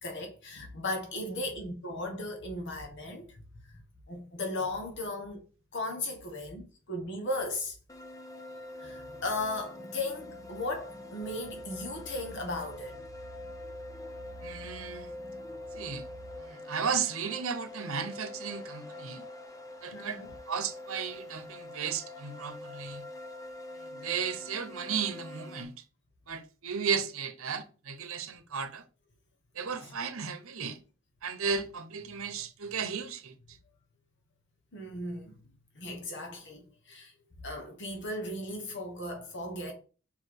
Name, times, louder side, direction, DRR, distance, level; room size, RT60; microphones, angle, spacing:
voice 1, 0.0-3.4 4.1-5.4 5.7-7.8 8.8-13.0 19.9-20.3 29.8-29.9 34.7-35.3 35.7-37.1 37.4-39.7, left 2 dB, 55° left, 1.6 m, -36 dB
sound 1, 7.9-25.6, left 1 dB, 15° left, 0.7 m, -45 dB
sound 2, 8.8-16.4, equal, 35° left, 2.1 m, -51 dB
voice 2, 14.4-15.1 15.7-16.1 16.4-19.3 19.8-20.2 20.5-23.1 23.9-25.7 26.3-28.8 29.5-30.8 31.2-33.6, right 6 dB, 70° right, 0.9 m, -34 dB
5.4 x 4.9 x 4.8 m
head